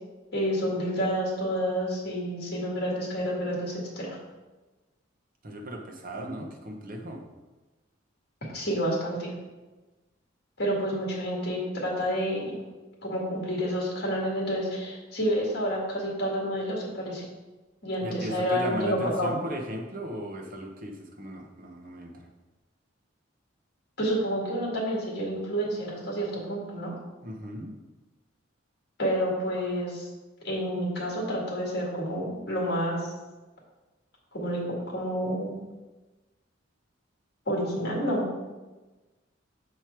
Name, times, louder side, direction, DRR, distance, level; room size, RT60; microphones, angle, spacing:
voice 1, 0.3-4.2 8.5-9.3 10.6-12.6 13.0-17.3 17.8-19.3 24.0-26.9 29.0-30.1 30.4-33.1 34.3-35.5 37.5-38.3, equal, 55° left, -3 dB, 2.0 m, -29 dB
voice 2, 5.4-7.2 18.0-22.3 27.2-27.7, equal, 45° right, 2 dB, 0.9 m, -36 dB
6.6 x 4.6 x 4.6 m, 1.2 s
head